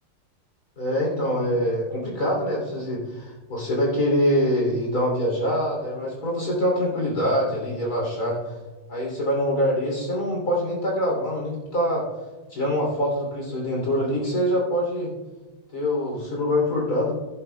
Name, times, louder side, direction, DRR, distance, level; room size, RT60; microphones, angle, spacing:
voice 1, 0.8-8.5 8.9-12.1 12.5-15.1 15.7-17.1, equal, 45° left, -2 dB, 3.6 m, -24 dB
15.0 x 11.0 x 2.3 m, 1.1 s
omnidirectional pair, 2.3 m